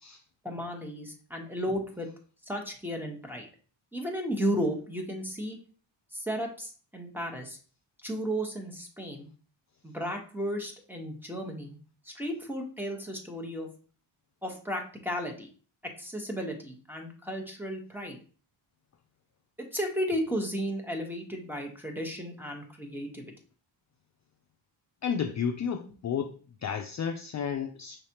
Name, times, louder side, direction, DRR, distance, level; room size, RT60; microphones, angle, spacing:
voice 1, 0.4-2.1 2.5-3.5 3.9-5.6 6.1-7.6 8.0-9.3 9.8-11.8 12.0-13.7 14.4-15.5 16.0-18.2 19.6-23.3, equal, 5° right, 1.1 m, -34 dB
voice 2, 25.0-26.3 26.6-28.0, left 7 dB, 40° left, 0.4 m, -32 dB
5.5 x 3.3 x 2.8 m
cardioid pair, 95°, 47 cm